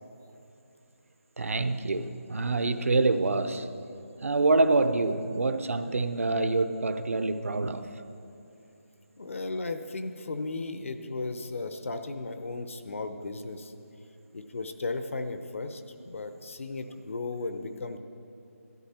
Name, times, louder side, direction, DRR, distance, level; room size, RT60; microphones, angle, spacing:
voice 1, 1.4-3.7 4.2-8.0, right 3 dB, 65° right, 10 dB, 0.7 m, -26 dB
voice 2, 9.2-13.7 14.3-18.0, left 3 dB, 60° left, 8 dB, 0.9 m, -35 dB
12.0 x 10.5 x 4.4 m, 2.7 s
figure-of-eight pair, 165°, 8 cm